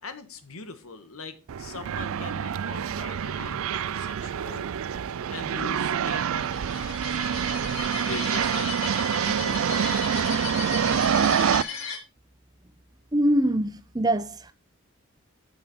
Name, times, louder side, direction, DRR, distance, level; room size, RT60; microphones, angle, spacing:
voice 1, 0.0-4.7 5.3-8.8 9.2-10.9, left 4 dB, 85° left, 1.5 m, -41 dB
sound 1, 1.5-11.6, right 8 dB, 75° right, 0.4 m, -26 dB
sound 2, 6.4-12.0, left 5 dB, 65° left, 2.3 m, -36 dB
voice 2, 13.1-14.5, right 1 dB, 20° right, 0.7 m, -24 dB
9.1 x 7.4 x 4.3 m
head